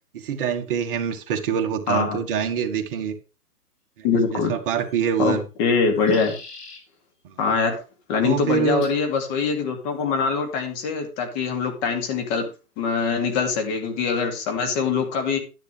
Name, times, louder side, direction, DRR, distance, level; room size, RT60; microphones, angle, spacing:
voice 1, 0.1-3.1 4.0-5.4 7.2-7.4 8.2-8.9, right 7 dB, 35° right, 5 dB, 1.7 m, -25 dB
voice 2, 1.9-2.2 4.0-4.5 5.2-6.3 7.4-7.8 8.1-12.5 12.8-15.4, left 5 dB, 25° left, 5 dB, 2.5 m, -23 dB
sound 1, 4.8-5.2 5.7-6.8 8.8-9.1 10.0-10.4, left 3 dB, 80° left, 3.9 m, -43 dB
11.5 x 10.5 x 3.3 m, 0.31 s
hypercardioid pair, 140°, 47 cm